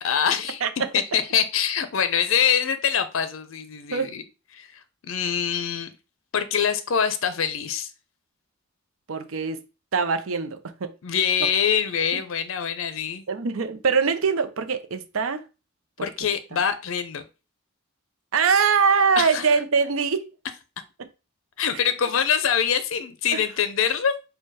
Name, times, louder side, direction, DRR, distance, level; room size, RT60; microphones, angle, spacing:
voice 1, 0.0-0.6 0.9-4.2 4.5-5.9 6.3-7.9 11.0-13.2 16.0-17.2 19.2-19.4 21.6-24.1, left 7 dB, 70° left, 0.5 m, -24 dB
voice 2, 9.1-9.6 9.9-10.9 12.1-12.2 13.3-15.4 16.0-16.1 18.3-20.3 21.0-21.1 21.7-21.8 23.3-23.4, right 5 dB, 80° right, 0.6 m, -23 dB
4.4 x 2.3 x 4.7 m
head